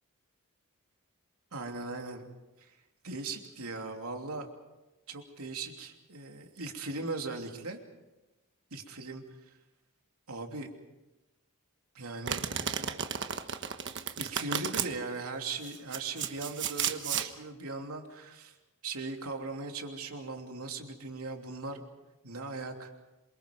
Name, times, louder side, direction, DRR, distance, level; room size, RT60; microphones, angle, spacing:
voice 1, 1.5-2.2 2.6-2.7 3.0-4.5 5.1-7.8 8.7-9.5 10.3-10.7 11.9-13.0 14.2-18.5 18.8-21.8 22.2-23.1, right 3 dB, 85° right, 3 dB, 3.0 m, -39 dB
Domestic sounds home sounds, 12.3-14.9 15.6-17.3, right 8 dB, 55° right, 1.3 m, -33 dB
27.5 x 23.5 x 5.3 m, 1.0 s
head